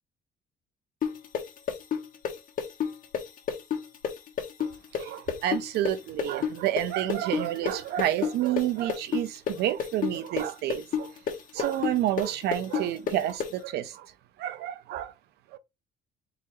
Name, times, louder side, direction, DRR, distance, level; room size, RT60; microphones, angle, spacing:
sound 1, 1.0-8.6 8.9-13.5, left 7 dB, 55° left, 1.2 m, -29 dB
voice 1, 5.0-11.1 11.5-14.1 14.4-15.1 15.5-15.6, right 12 dB, 75° right, 0.5 m, -29 dB
4.1 x 4.0 x 2.7 m
cardioid pair, 110°, 17 cm